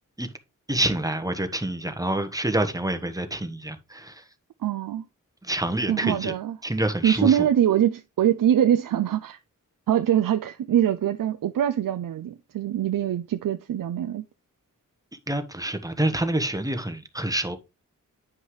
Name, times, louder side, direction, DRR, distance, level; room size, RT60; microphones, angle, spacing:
voice 1, 0.7-4.2 5.4-6.3 6.6-7.5 15.3-17.6, right 1 dB, 10° right, 1.2 m, -27 dB
voice 2, 4.6-5.0 5.9-6.6 7.0-9.4 9.9-14.2, right 10 dB, 90° right, 0.5 m, -23 dB
9.7 x 5.5 x 3.2 m
cardioid pair, 65°, 33 cm